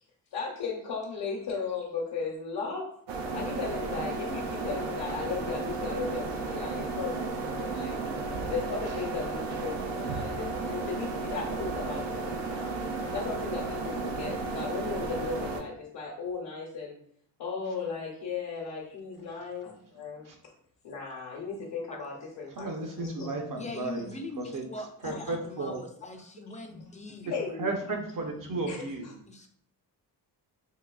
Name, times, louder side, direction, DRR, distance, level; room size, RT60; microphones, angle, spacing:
voice 1, 0.3-2.9 3.3-8.0 8.5-12.7 13.1-17.0 17.4-19.7 20.0-20.3 20.8-23.3 25.0-25.2 25.6-25.8 26.7-26.8 27.3-28.0 28.7-28.8, left 5 dB, 75° left, -2 dB, 0.8 m, -36 dB
sound 1, 3.1-15.6, right 3 dB, 90° right, 0.5 m, -33 dB
voice 2, 22.6-24.1 24.4-24.6 25.0-25.8 27.2-27.3 27.6-29.2, right 2 dB, 50° right, 2 dB, 0.6 m, -34 dB
voice 3, 23.5-27.3 29.3-29.5, left 2 dB, 20° left, 4 dB, 0.3 m, -41 dB
3.7 x 2.7 x 2.3 m, 0.65 s
wide cardioid pair, 115°, 42 cm